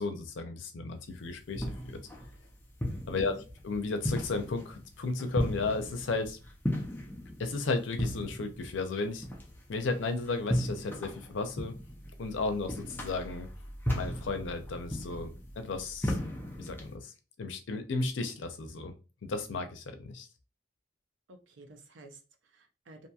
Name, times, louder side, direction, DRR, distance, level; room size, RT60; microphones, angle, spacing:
voice 1, 0.0-1.7 3.1-3.3 3.6-6.4 7.4-9.2 9.7-11.8 12.2-13.5 13.9-16.2 16.6-17.1 17.4-18.9 19.2-20.3, left 3 dB, 85° left, 7 dB, 0.5 m, -34 dB
sound 1, 1.0-16.9, equal, 10° left, 0.5 m, -37 dB
voice 2, 21.3-23.1, right 2 dB, 90° right, 4 dB, 0.6 m, -53 dB
2.7 x 2.6 x 2.3 m, 0.33 s
head